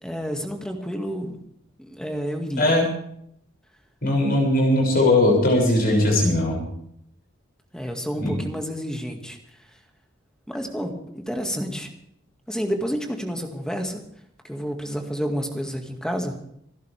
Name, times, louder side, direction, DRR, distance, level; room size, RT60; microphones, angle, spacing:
voice 1, 0.0-1.4 1.8-2.8 7.7-9.4 10.5-11.9 12.5-14.0 14.4-16.3, equal, 5° left, 3 dB, 2.0 m, -29 dB
voice 2, 2.6-2.9 4.0-6.6 8.2-8.3, left 1 dB, 50° left, 0 dB, 6.6 m, -19 dB
27.0 x 12.0 x 3.5 m, 0.71 s
head